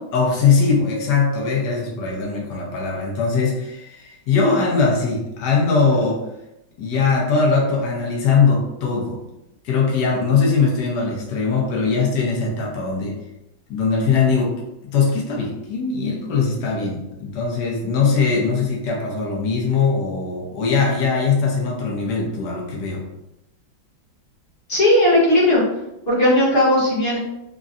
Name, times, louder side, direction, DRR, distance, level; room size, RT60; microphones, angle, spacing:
voice 1, 0.1-6.2 6.8-9.2 9.6-13.2 13.7-14.5 14.9-23.1, left 5 dB, 70° left, -3 dB, 1.2 m, -20 dB
voice 2, 24.7-25.6 26.1-27.2, left 1 dB, 40° left, -7 dB, 1.1 m, -16 dB
3.7 x 2.2 x 2.5 m, 0.89 s
omnidirectional pair, 2.1 m